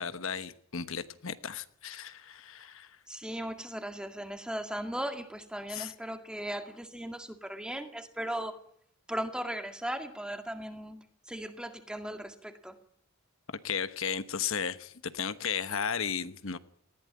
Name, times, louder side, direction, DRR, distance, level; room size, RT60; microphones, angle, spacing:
voice 1, 0.0-3.0 5.7-5.9 13.6-16.6, left 7 dB, 70° left, 12 dB, 1.1 m, -35 dB
voice 2, 3.1-8.6 9.1-12.8, right 1 dB, 5° right, 7 dB, 2.1 m, -37 dB
19.5 x 15.0 x 9.9 m, 0.67 s
head